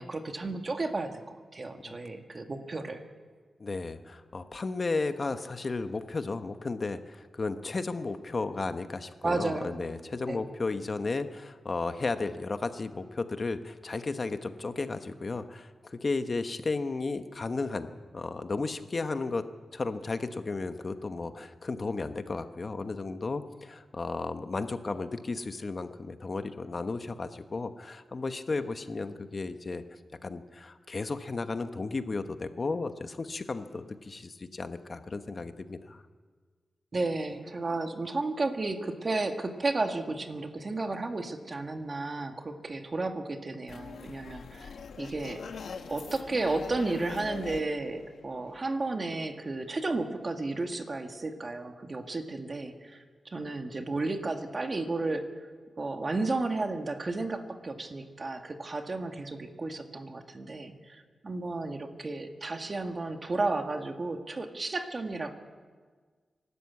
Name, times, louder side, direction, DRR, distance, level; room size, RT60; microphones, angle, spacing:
voice 1, 0.0-3.0 9.2-9.8 10.3-10.5 36.9-45.4 45.9-53.0 53.3-55.3 55.8-65.3, right 3 dB, 40° right, 5 dB, 2.0 m, -33 dB
voice 2, 3.6-17.9 18.1-19.4 19.7-29.8 30.2-36.0, left 3 dB, 45° left, 9 dB, 1.1 m, -34 dB
sound 1, 43.7-48.8, left 6 dB, 85° left, 1.3 m, -43 dB
24.0 x 13.0 x 8.5 m, 1.5 s
cardioid pair, 80°, 0 cm